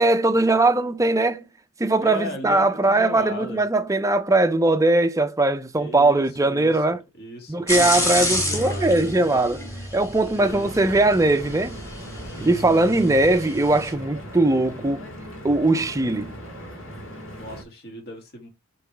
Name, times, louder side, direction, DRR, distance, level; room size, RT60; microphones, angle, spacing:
voice 1, 0.0-1.4 1.8-7.0 7.5-9.6 9.9-11.8 12.4-15.0 15.4-16.3, right 2 dB, 15° right, 0.5 m, -20 dB
voice 2, 2.0-3.6 5.8-9.1 10.3-10.8 12.3-13.1 17.4-18.5, left 1 dB, 50° left, 1.9 m, -37 dB
sound 1, 7.7-13.9, left 1 dB, 15° left, 2.0 m, -29 dB
Stream / Boat Water vehicle, 10.4-17.6, equal, 65° left, 2.4 m, -38 dB
7.4 x 3.1 x 4.6 m
head